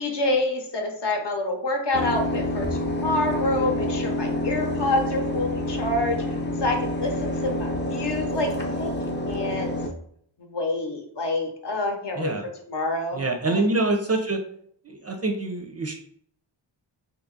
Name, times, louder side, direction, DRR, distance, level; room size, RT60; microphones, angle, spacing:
voice 1, 0.0-6.2 6.6-8.9 9.3-9.7 10.4-13.6, left 2 dB, 60° left, 3 dB, 0.8 m, -27 dB
sound 1, 1.9-9.9, left 1 dB, 25° left, 0.4 m, -28 dB
voice 2, 13.2-14.4 14.9-15.9, right 2 dB, 35° right, 4 dB, 0.4 m, -25 dB
2.9 x 2.4 x 3.8 m, 0.65 s
wide cardioid pair, 105°, 47 cm